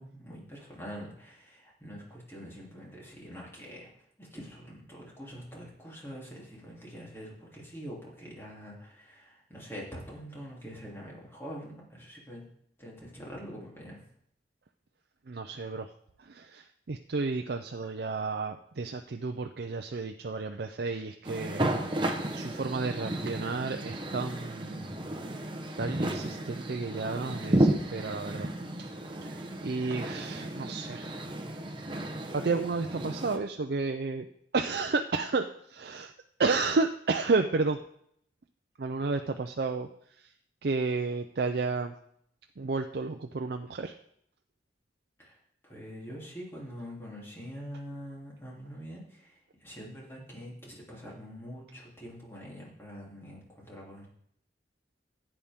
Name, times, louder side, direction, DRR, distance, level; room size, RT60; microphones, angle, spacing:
voice 1, 0.0-3.9 4.2-12.4 12.8-14.0 45.2-54.1, equal, 15° left, -4 dB, 3.1 m, -45 dB
voice 2, 15.3-15.9 16.2-21.6 22.0-24.9 25.8-28.5 28.8-28.9 29.2-31.1 32.3-34.3 34.5-36.1 36.4-37.8 38.8-39.9 40.2-40.3 40.6-41.9 42.6-43.9, right 3 dB, 60° right, 5 dB, 0.5 m, -32 dB
sound 1, 21.2-33.4, right 1 dB, 25° right, 1.1 m, -33 dB
15.0 x 8.9 x 3.7 m, 0.70 s
head